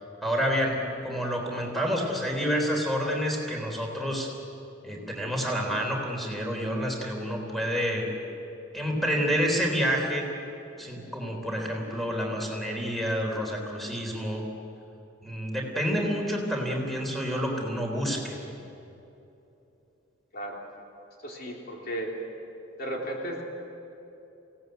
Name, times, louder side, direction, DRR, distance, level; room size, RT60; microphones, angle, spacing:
voice 1, 0.2-4.3 4.8-8.1 8.7-10.3 10.8-14.5 15.2-18.5, equal, ahead, 0 dB, 3.7 m, -28 dB
voice 2, 20.3-20.7 21.2-22.1 22.8-23.4, right 1 dB, 50° left, -1 dB, 3.4 m, -34 dB
27.5 x 18.0 x 8.0 m, 2.9 s
head